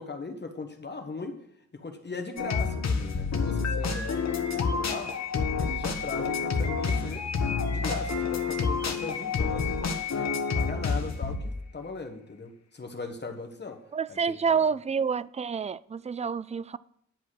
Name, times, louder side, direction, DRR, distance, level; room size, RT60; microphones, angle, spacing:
voice 1, 0.0-1.4 1.7-5.1 5.6-7.2 7.7-13.8 14.1-14.8, left 3 dB, 35° left, 1.4 m, -39 dB
sound 1, 2.4-11.6, left 5 dB, 60° left, 1.2 m, -28 dB
voice 2, 13.9-16.8, right 6 dB, 25° right, 0.3 m, -28 dB
10.5 x 5.3 x 6.3 m
wide cardioid pair, 90°, 30 cm